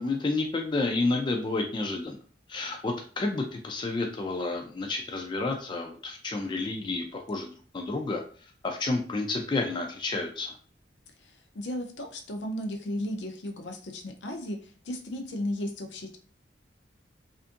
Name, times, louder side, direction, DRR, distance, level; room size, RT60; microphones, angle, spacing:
voice 1, 0.0-2.2 2.5-8.2 8.6-10.5, left 3 dB, 25° left, 3 dB, 0.3 m, -30 dB
voice 2, 11.2-16.2, left 1 dB, 75° left, 3 dB, 0.6 m, -35 dB
2.5 x 2.5 x 2.5 m, 0.42 s
head